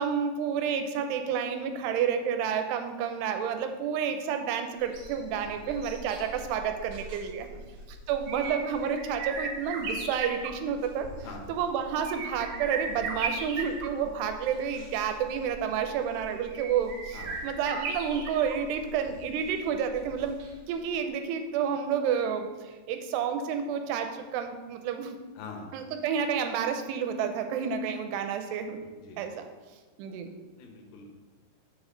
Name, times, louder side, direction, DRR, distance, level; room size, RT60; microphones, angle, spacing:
voice 1, 0.0-7.5 7.9-11.1 11.5-20.4 20.7-25.2 25.7-28.8 29.2-29.5 30.0-30.3, right 7 dB, 85° right, 7 dB, 2.7 m, -30 dB
sound 1, 4.8-20.7 21.0-21.1, right 4 dB, 65° right, 1.9 m, -38 dB
voice 2, 7.5-7.9 11.2-11.5 17.1-17.4 25.4-25.7 29.0-29.2 30.6-31.1, left 4 dB, 70° left, 1 dB, 2.7 m, -44 dB
7.6 x 6.2 x 3.8 m, 1.3 s
omnidirectional pair, 4.8 m